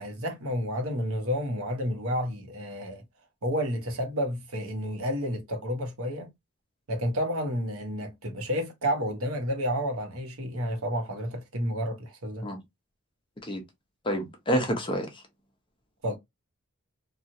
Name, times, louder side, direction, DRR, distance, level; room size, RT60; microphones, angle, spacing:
voice 1, 0.0-3.0 3.4-6.3 6.9-12.5 16.0-16.2, equal, 80° right, 1.0 m, -30 dB
voice 2, 14.0-15.1, equal, 25° left, 0.6 m, -28 dB
3.0 x 2.3 x 2.6 m
head